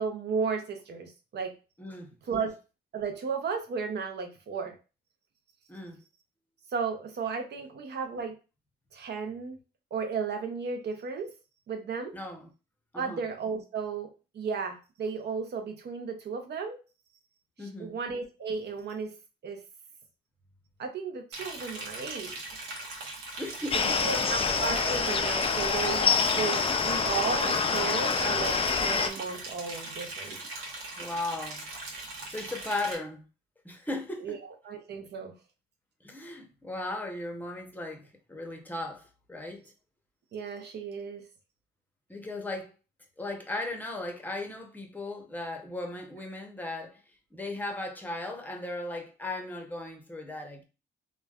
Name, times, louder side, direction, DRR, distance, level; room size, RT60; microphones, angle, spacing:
voice 1, 0.0-1.5 2.3-2.5 2.9-4.8 6.7-8.3 8.9-9.6 9.9-11.3 11.7-12.1 13.0-14.1 14.3-16.8 17.8-19.1 19.4-19.6 20.8-22.3 23.9-30.4 34.2-34.4 34.6-35.3 40.3-41.2, right 5 dB, 60° right, 0.7 m, -34 dB
voice 2, 1.8-2.1 5.7-6.0 12.1-12.5 12.9-13.2 17.6-18.0 23.4-24.3 31.0-31.7 32.3-33.3 33.6-34.3 36.0-39.7 42.1-42.7 43.2-47.0 47.3-50.6, left 2 dB, 10° left, 0.8 m, -37 dB
Liquid, 21.3-33.0, right 2 dB, 85° right, 0.9 m, -40 dB
sound 1, 23.7-29.1, left 5 dB, 30° left, 0.4 m, -26 dB
3.1 x 2.2 x 2.4 m
cardioid pair, 90°, 20 cm